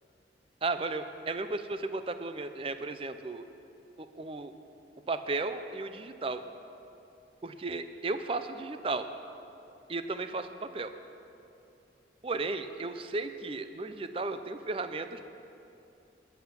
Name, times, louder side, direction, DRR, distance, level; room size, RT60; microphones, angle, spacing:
voice 1, 0.6-3.4 4.0-4.5 5.1-6.4 7.4-9.1 9.9-10.9 12.2-15.2, right 3 dB, 30° right, 10 dB, 0.4 m, -34 dB
17.5 x 5.9 x 5.8 m, 2.8 s
head